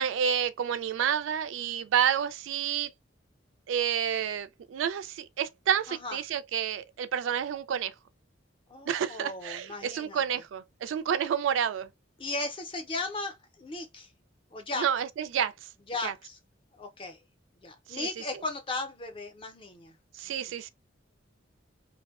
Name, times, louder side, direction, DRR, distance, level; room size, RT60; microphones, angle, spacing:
voice 1, 0.0-2.9 3.7-7.9 8.9-11.9 14.8-15.7 16.0-16.1 17.9-18.1 18.3-18.4 20.1-20.7, right 8 dB, 80° right, 0.3 m, -29 dB
voice 2, 5.9-6.2 8.7-10.2 12.2-14.1 14.5-14.8 15.9-16.4 16.8-17.2 17.6-19.9 20.2-20.5, left 2 dB, 25° left, 0.5 m, -36 dB
2.6 x 2.1 x 2.3 m
head